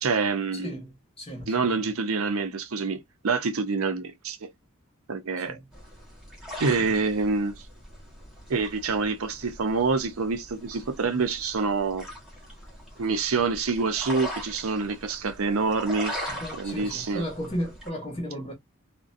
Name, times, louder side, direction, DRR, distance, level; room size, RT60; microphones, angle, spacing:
voice 1, 0.0-0.7 1.5-3.0 3.2-4.5 5.1-5.6 6.6-7.5 8.5-12.1 13.0-16.1 16.5-17.2, right 4 dB, 80° right, 0.6 m, -26 dB
voice 2, 0.6-1.9 5.4-5.7 6.8-6.9 16.3-18.5, equal, 25° left, 1.0 m, -35 dB
sound 1, 5.7-17.9, equal, 5° right, 0.9 m, -41 dB
2.4 x 2.1 x 2.5 m
head